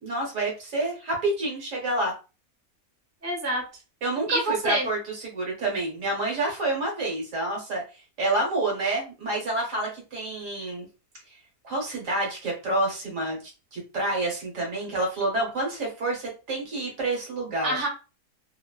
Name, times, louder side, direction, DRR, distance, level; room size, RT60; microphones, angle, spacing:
voice 1, 0.0-2.1 4.0-7.8 8.2-10.9 11.6-17.8, right 2 dB, 60° right, -1 dB, 1.2 m, -28 dB
voice 2, 3.2-3.6 4.3-4.9 17.6-17.9, right 2 dB, 15° right, -2 dB, 0.6 m, -26 dB
2.7 x 2.0 x 2.2 m, 0.31 s
omnidirectional pair, 1.6 m